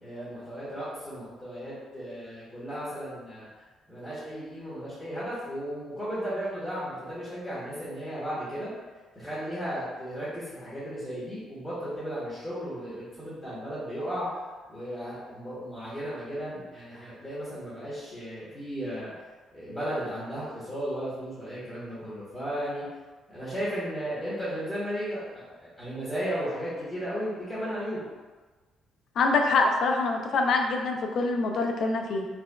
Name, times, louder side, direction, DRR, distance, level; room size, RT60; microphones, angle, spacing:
voice 1, 0.0-3.5 3.9-8.7 9.1-14.4 14.7-19.1 19.5-22.9 23.3-28.0, equal, 15° left, -11 dB, 1.0 m, -35 dB
voice 2, 29.2-32.3, left 3 dB, 55° left, 3 dB, 0.4 m, -25 dB
4.7 x 2.2 x 2.3 m, 1.3 s
cardioid pair, 145°, 0 cm